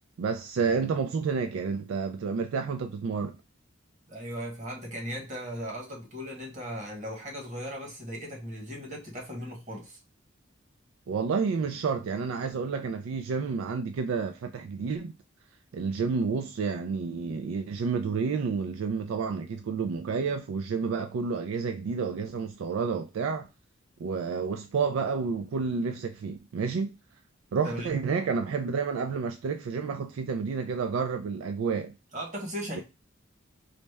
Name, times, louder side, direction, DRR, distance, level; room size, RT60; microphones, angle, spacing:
voice 1, 0.2-3.3 11.1-15.1 15.7-23.5 24.0-27.0 27.5-31.9 32.7-32.8, right 5 dB, 85° right, 0.3 m, -30 dB
voice 2, 4.1-10.0 19.8-19.9 27.6-27.9 32.1-32.8, equal, 40° right, 1.4 m, -37 dB
4.0 x 2.1 x 3.3 m
head